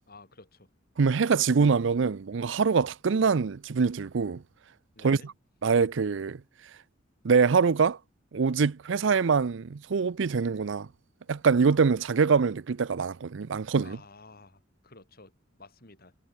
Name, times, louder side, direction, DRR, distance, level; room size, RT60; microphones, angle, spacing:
voice 1, 0.1-0.7 5.0-5.3 13.8-15.3 15.6-16.1, left 3 dB, 50° left, 7.9 m, -52 dB
voice 2, 1.0-4.4 5.0-5.3 5.6-6.4 7.2-8.0 8.3-10.9 11.3-14.0, right 5 dB, 70° right, 0.5 m, -24 dB
head